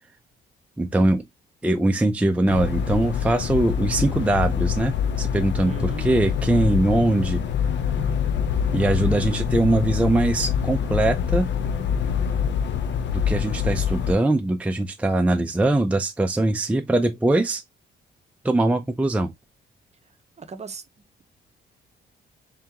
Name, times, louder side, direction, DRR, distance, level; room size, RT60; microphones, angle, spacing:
voice 1, 0.8-1.2 1.6-7.4 8.7-11.5 13.1-17.6 18.4-19.3, right 2 dB, 5° right, 0.5 m, -22 dB
sound 1, 2.5-14.1, left 7 dB, 65° left, 0.7 m, -25 dB
voice 2, 5.7-6.1 20.4-21.1, right 5 dB, 35° right, 0.8 m, -38 dB
3.7 x 3.5 x 2.8 m
cardioid pair, 90°, 20 cm